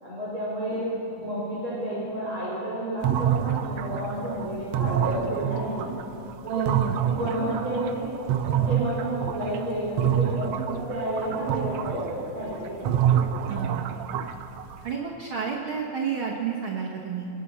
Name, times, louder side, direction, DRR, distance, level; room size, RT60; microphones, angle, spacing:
voice 1, 0.0-5.9 6.4-6.5 7.1-8.1 8.5-13.2, right 1 dB, 40° right, -9 dB, 4.3 m, -31 dB
sound 1, 3.0-9.7 10.0-14.9, right 9 dB, 85° right, 1.5 m, -27 dB
voice 2, 6.5-7.0 13.5-13.8 14.8-17.3, right 6 dB, 60° right, -2 dB, 1.3 m, -30 dB
23.0 x 9.2 x 5.5 m, 2.9 s
omnidirectional pair, 3.8 m